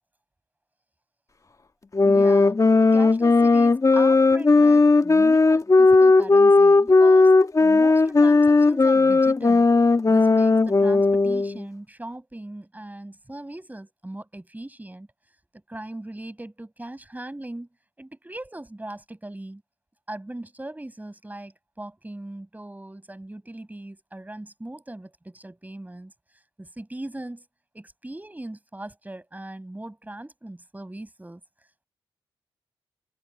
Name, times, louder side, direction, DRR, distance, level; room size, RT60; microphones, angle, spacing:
sound 1, 1.9-11.6, left 3 dB, 35° left, 1.6 m, -17 dB
voice 1, 2.0-7.3 7.6-9.7 10.1-15.1 15.7-17.7 18.0-19.6 20.1-26.1 26.6-27.4 27.7-31.4, right 1 dB, 15° right, 6.9 m, -39 dB
supercardioid pair, 45°, 10 cm